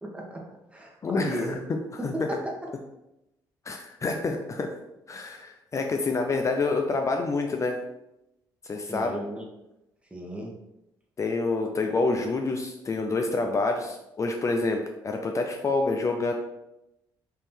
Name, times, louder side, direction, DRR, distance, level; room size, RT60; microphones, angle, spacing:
voice 1, 0.0-0.4 0.7-1.6 2.0-2.7 8.9-9.4 10.1-10.5, equal, 15° right, -1 dB, 1.3 m, -34 dB
voice 2, 1.0-1.5 2.0-2.1 3.7-4.7 5.1-7.8 8.7-9.2 11.2-16.3, left 3 dB, 35° left, 3 dB, 0.5 m, -27 dB
3.7 x 3.1 x 4.4 m, 0.89 s
cardioid pair, 80°, 9 cm